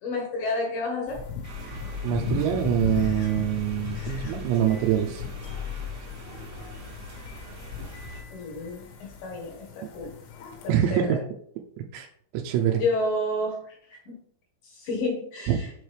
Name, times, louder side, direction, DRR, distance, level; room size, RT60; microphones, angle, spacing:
voice 1, 0.0-1.2 8.3-10.1 10.6-11.2 12.8-14.2 14.6-15.7, left 2 dB, 70° left, 1 dB, 2.3 m, -30 dB
sound 1, 1.1-10.7, left 6 dB, 90° left, 3.5 m, -37 dB
sound 2, 1.4-8.2, left 3 dB, 55° right, 1.8 m, -39 dB
voice 2, 2.0-5.2 10.7-11.2 11.9-12.1 12.3-12.8 15.5-15.6, right 10 dB, 85° right, 2 dB, 2.9 m, -24 dB
7.2 x 4.5 x 3.3 m, 0.65 s
omnidirectional pair, 5.1 m